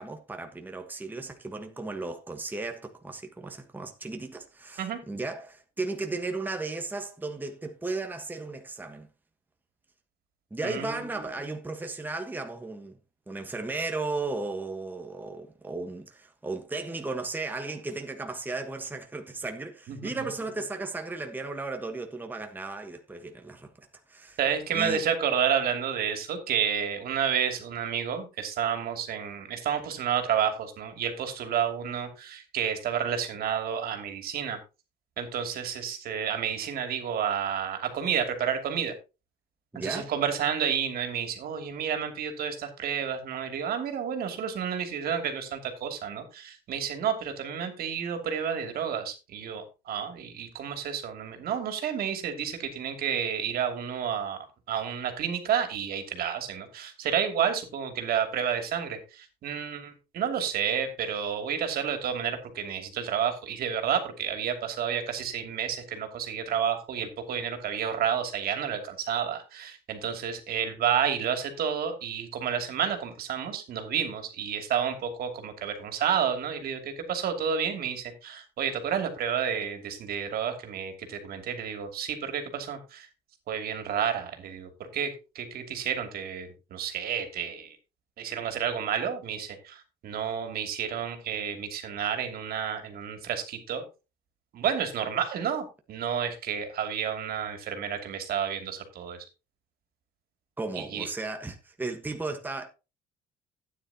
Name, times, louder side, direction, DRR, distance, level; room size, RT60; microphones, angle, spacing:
voice 1, 0.0-9.1 10.5-13.0 13.3-24.4 24.7-25.0 39.7-40.1 100.6-102.7, right 3 dB, 10° right, 1.3 m, -35 dB
voice 2, 10.6-11.3 19.9-20.1 24.4-34.6 35.2-38.9 39.8-54.4 54.7-83.1 83.5-87.8 88.2-93.8 94.5-99.2 100.8-101.1, right 8 dB, 65° right, 2.7 m, -30 dB
12.5 x 9.6 x 2.9 m
cardioid pair, 110°, 17 cm